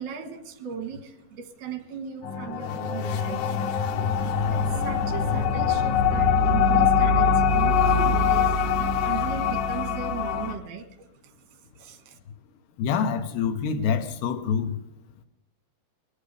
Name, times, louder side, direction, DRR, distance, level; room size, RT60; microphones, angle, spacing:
voice 1, 0.0-3.5 4.5-8.6 9.0-11.3 11.8-12.2, right 7 dB, 85° right, 3.5 m, -37 dB
sound 1, 2.2-10.5, left 5 dB, 75° left, 1.8 m, -23 dB
voice 2, 12.8-14.8, left 6 dB, 90° left, 3.1 m, -26 dB
22.5 x 17.0 x 3.4 m
omnidirectional pair, 4.4 m